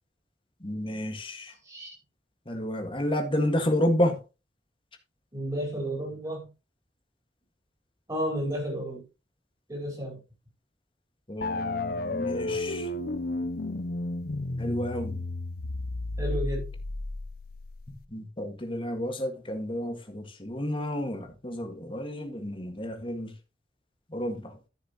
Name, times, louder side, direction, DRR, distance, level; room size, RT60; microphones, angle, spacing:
voice 1, 0.6-1.5 2.5-4.2 11.3-12.9 14.6-15.2 18.1-23.3 24.1-24.5, left 1 dB, 30° left, 1.8 m, -30 dB
voice 2, 1.5-1.9 5.3-6.5 8.1-9.0 9.7-10.2 16.2-16.7, right 1 dB, 20° right, 4.5 m, -32 dB
sound 1, 11.4-18.1, left 2 dB, 55° left, 0.7 m, -32 dB
14.0 x 6.6 x 3.0 m
head